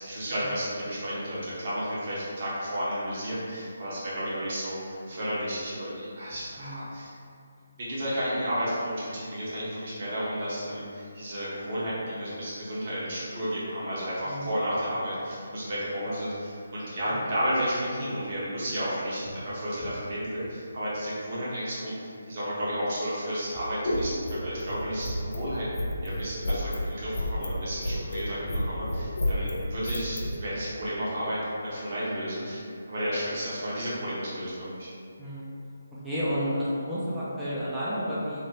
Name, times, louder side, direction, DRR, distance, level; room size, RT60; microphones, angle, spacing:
voice 1, 0.0-7.1 7.8-25.7 26.0-34.9, equal, 45° right, -8 dB, 1.0 m, -32 dB
voice 2, 6.6-6.9 14.2-14.5 35.2-35.5 36.0-38.4, equal, 5° right, -11 dB, 0.4 m, -31 dB
sound 1, 23.5-30.4, left 1 dB, 65° left, 0.4 m, -30 dB
3.2 x 2.0 x 2.9 m, 2.4 s
figure-of-eight pair, 150°, 0 cm